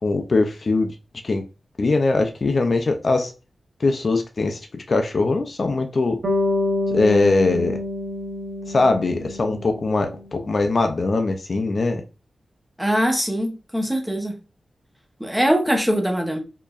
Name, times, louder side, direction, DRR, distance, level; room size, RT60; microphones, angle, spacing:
voice 1, 0.0-0.9 1.2-1.4 1.8-3.3 3.8-4.6 4.9-6.2 6.9-7.8 8.7-12.0, left 3 dB, 50° left, 0.5 m, -21 dB
Bass guitar, 6.2-10.4, left 2 dB, 60° right, 1.1 m, -27 dB
voice 2, 12.8-14.4 15.2-16.4, equal, 5° right, 0.9 m, -22 dB
4.5 x 3.0 x 2.5 m
wide cardioid pair, 115°, 0 cm